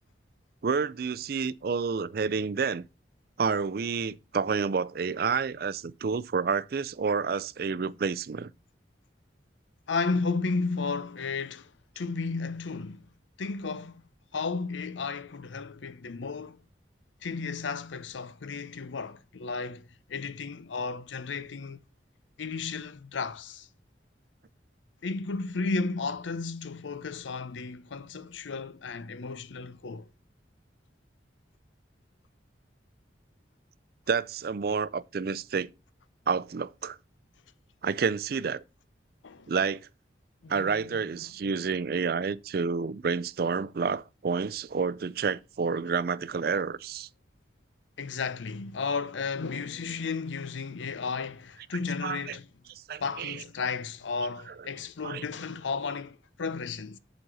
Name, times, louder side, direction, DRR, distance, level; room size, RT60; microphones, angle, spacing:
voice 1, 0.6-2.9 3.4-8.5 34.1-35.7 36.3-37.0 37.8-38.6 39.5-39.9 40.5-47.1 52.0-52.3 52.9-53.4 55.0-55.2, right 5 dB, 55° right, 0.4 m, -29 dB
voice 2, 9.9-13.1 13.4-14.0 14.3-16.6 17.2-21.8 22.4-23.7 25.0-30.1 39.2-39.5 40.4-41.0 48.0-52.5 53.0-57.0, left 4 dB, 85° left, 0.6 m, -33 dB
7.8 x 4.1 x 6.1 m
head